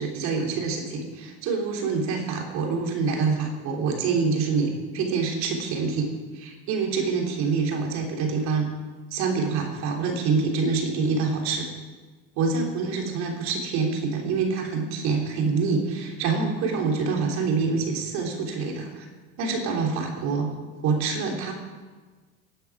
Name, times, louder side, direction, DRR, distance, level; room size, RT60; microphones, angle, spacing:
voice 1, 0.0-8.7 9.1-11.7 12.4-19.1 19.4-20.5 20.8-21.5, right 4 dB, 60° right, 1 dB, 3.4 m, -26 dB
18.0 x 9.2 x 4.9 m, 1.4 s
hypercardioid pair, 90°, 32 cm